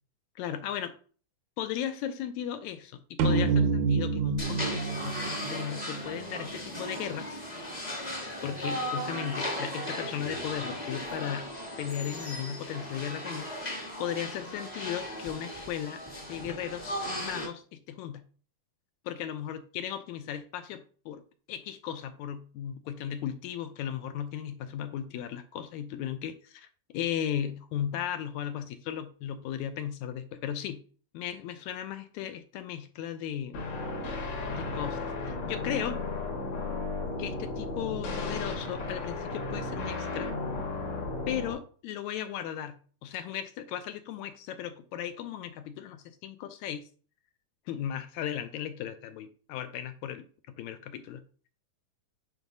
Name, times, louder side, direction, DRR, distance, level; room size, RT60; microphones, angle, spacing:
voice 1, 0.4-0.9 1.6-7.4 8.4-11.5 11.8-18.2 19.1-21.2 21.5-30.8 31.1-33.6 34.5-36.0 37.2-40.3 41.3-42.8 43.0-46.9 47.7-51.2, left 10 dB, 80° left, 1.8 m, -36 dB
sound 1, 3.2-6.7, right 4 dB, 80° right, 2.1 m, -28 dB
sound 2, 4.4-17.5, equal, 30° left, 0.7 m, -37 dB
sound 3, 33.5-41.5, left 3 dB, 65° left, 2.7 m, -34 dB
8.9 x 4.7 x 2.6 m
omnidirectional pair, 3.5 m